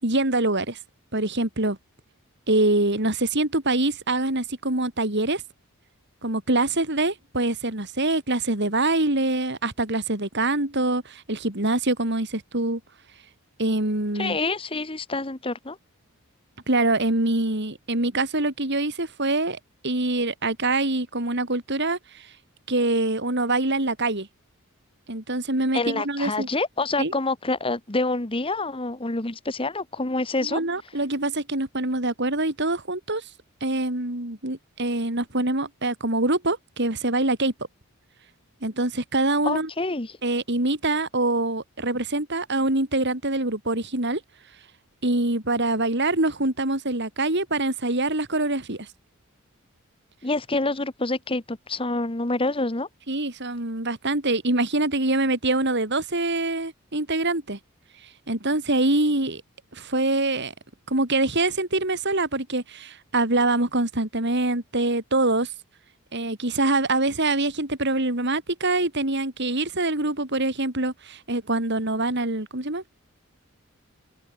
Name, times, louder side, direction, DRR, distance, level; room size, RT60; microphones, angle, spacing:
voice 1, 0.0-0.8 1.1-1.8 2.5-5.4 6.2-12.8 13.6-14.4 16.7-19.6 19.8-22.3 22.7-24.3 25.1-26.5 27.0-27.1 30.4-33.2 33.6-37.5 38.6-39.7 40.2-44.2 45.0-48.9 53.1-57.6 58.3-59.4 59.7-60.5 60.9-65.5 66.1-72.8, right 2 dB, 50° right, 3.6 m, -24 dB
voice 2, 14.1-15.8 25.7-30.6 39.4-40.2 50.2-52.9, left 2 dB, 25° left, 1.3 m, -27 dB
head